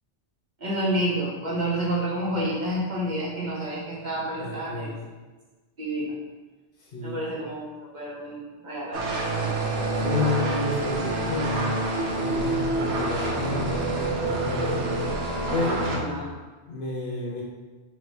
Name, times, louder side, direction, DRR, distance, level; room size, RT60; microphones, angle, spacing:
voice 1, 0.6-4.9 5.8-6.1 7.0-7.7 7.9-9.1 15.8-16.2, right 1 dB, 45° right, -6 dB, 0.9 m, -29 dB
voice 2, 4.4-5.1 6.8-7.3 9.9-11.8 12.1-14.8 15.2-15.9 16.7-17.4, left 2 dB, 55° left, -3 dB, 0.8 m, -31 dB
sound 1, 8.9-16.0, right 2 dB, 80° right, 1.0 m, -27 dB
4.0 x 3.1 x 3.2 m, 1.3 s
omnidirectional pair, 1.2 m